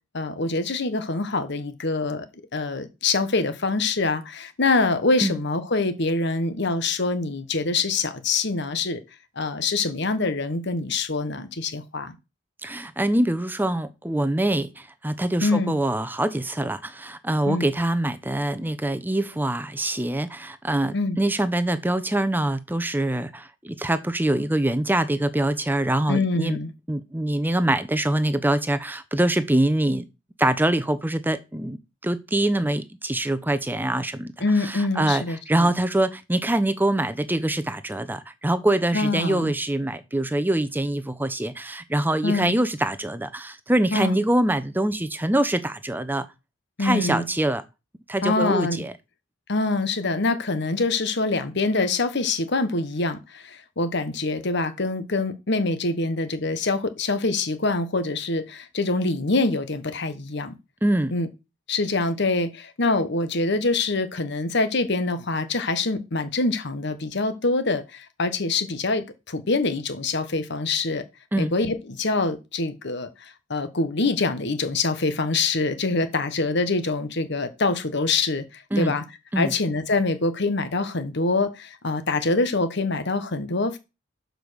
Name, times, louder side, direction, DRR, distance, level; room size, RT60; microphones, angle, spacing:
voice 1, 0.1-2.3 2.5-9.0 9.4-12.1 15.4-15.7 17.5-17.7 20.9-21.2 26.1-26.7 34.4-35.7 38.9-39.5 42.2-42.5 43.9-44.2 46.8-47.2 48.2-48.8 49.5-60.5 61.1-61.3 61.7-71.0 71.4-73.1 73.5-79.0 79.4-83.8, left 3 dB, 65° left, 1.2 m, -25 dB
voice 2, 12.6-26.6 26.9-30.1 30.4-31.8 32.0-34.3 34.6-46.3 46.8-47.6 48.1-48.9 60.8-61.1 71.3-71.5 78.7-78.9 79.3-79.5, right 1 dB, 10° right, 0.7 m, -24 dB
6.9 x 5.3 x 6.3 m
head